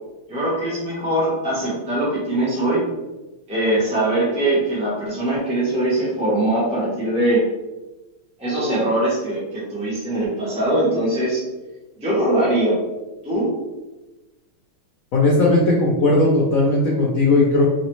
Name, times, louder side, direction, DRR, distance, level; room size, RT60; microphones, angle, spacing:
voice 1, 0.3-2.8 3.5-7.4 8.4-11.4 12.0-12.7 13.2-13.5, right 1 dB, 5° right, -8 dB, 0.5 m, -21 dB
voice 2, 15.1-17.6, left 2 dB, 85° left, -3 dB, 0.7 m, -17 dB
4.0 x 2.8 x 3.1 m, 1.1 s
omnidirectional pair, 2.4 m